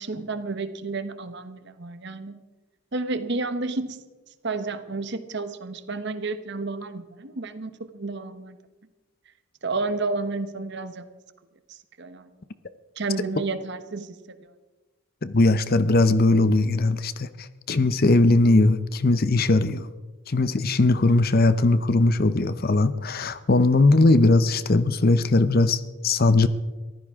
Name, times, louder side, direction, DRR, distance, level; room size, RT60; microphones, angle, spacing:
voice 1, 0.0-2.4 2.9-4.0 4.4-8.6 9.6-11.1 11.7-12.3 13.0-14.5, right 3 dB, 50° right, 11 dB, 0.9 m, -31 dB
voice 2, 15.2-19.9 20.3-26.5, left 2 dB, 45° left, 14 dB, 0.6 m, -20 dB
23.0 x 15.0 x 3.6 m, 1.2 s
head